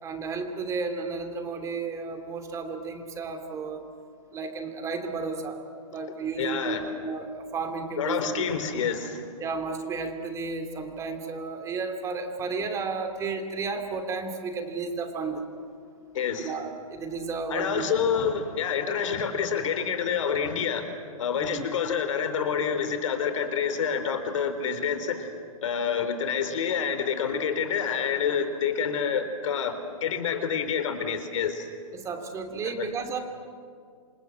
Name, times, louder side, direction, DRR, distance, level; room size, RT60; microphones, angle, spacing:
voice 1, 0.0-3.8 4.3-5.6 5.9-8.2 9.4-15.4 16.4-17.9 21.3-21.6 31.9-33.2, right 4 dB, 15° right, 6 dB, 2.8 m, -33 dB
voice 2, 6.4-6.8 8.0-9.3 16.1-16.5 17.5-20.9 21.2-25.3 25.6-31.7 32.8-32.9, left 7 dB, 60° left, 9 dB, 3.9 m, -28 dB
28.0 x 26.0 x 8.0 m, 2.2 s
hypercardioid pair, 150°, 18 cm